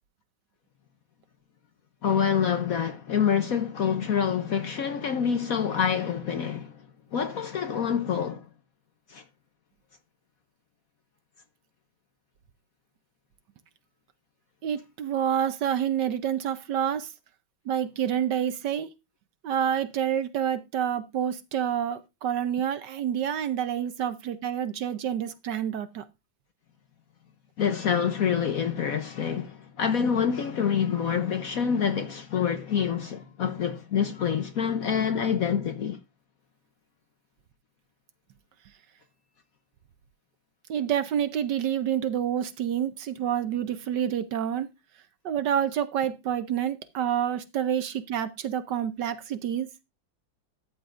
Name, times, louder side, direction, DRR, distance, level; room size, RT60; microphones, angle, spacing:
voice 1, 2.0-6.8 7.1-8.5 9.1-9.2 27.6-36.0, left 7 dB, 60° left, 1.0 m, -26 dB
voice 2, 14.6-17.1 17.7-18.9 19.4-26.0 40.7-44.7 45.2-49.7, right 9 dB, 65° right, 1.3 m, -28 dB
13.5 x 9.6 x 2.5 m
omnidirectional pair, 2.1 m